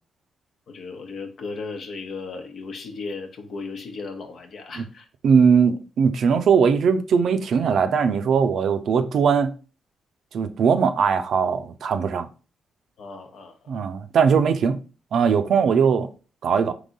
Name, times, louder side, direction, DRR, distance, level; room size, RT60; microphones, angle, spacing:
voice 1, 0.7-5.1 13.0-13.8, left 4 dB, 65° left, 0.9 m, -36 dB
voice 2, 5.2-9.5 10.3-12.3 13.7-14.8 15.1-16.1 16.4-16.7, right 6 dB, 70° right, 0.5 m, -20 dB
3.9 x 3.0 x 3.7 m
cardioid pair, 65°, 0 cm